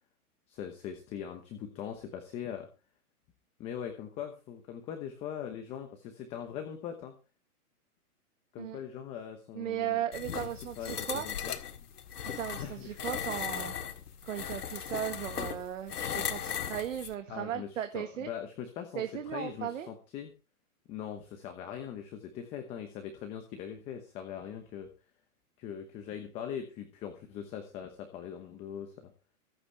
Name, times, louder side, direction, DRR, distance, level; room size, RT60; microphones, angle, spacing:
voice 1, 0.5-2.7 3.6-7.1 8.5-10.0 10.3-10.5 10.8-11.5 12.6-13.2 17.3-20.3 20.9-24.9 25.6-29.1, left 9 dB, 15° left, 6 dB, 0.9 m, -41 dB
voice 2, 9.5-11.3 12.3-13.7 14.2-18.3 18.9-19.9, right 10 dB, 55° right, 7 dB, 1.6 m, -36 dB
sound 1, 10.1-17.1, left 8 dB, 90° left, 1.9 m, -37 dB
24.0 x 8.5 x 3.3 m, 0.31 s
hypercardioid pair, 160°, 45 cm